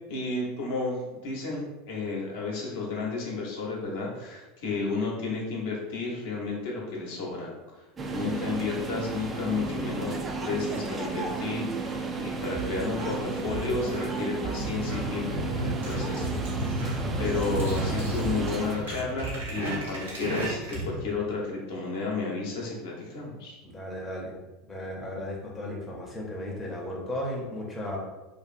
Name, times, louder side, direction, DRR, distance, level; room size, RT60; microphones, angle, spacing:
voice 1, 0.1-7.8 8.1-10.2 10.4-16.2 16.5-16.9 17.2-23.6, left 3 dB, 65° left, -3 dB, 0.7 m, -32 dB
sound 1, 8.0-18.8, right 3 dB, 25° right, 0.3 m, -33 dB
sound 2, 12.5-20.1, right 3 dB, 60° right, 1.0 m, -40 dB
sound 3, 14.6-21.0, right 1 dB, 80° right, 0.7 m, -33 dB
voice 2, 23.6-24.4 24.7-28.0, left 1 dB, 15° left, -2 dB, 0.6 m, -35 dB
2.5 x 2.4 x 2.4 m, 1.1 s
figure-of-eight pair, 80°, 0 cm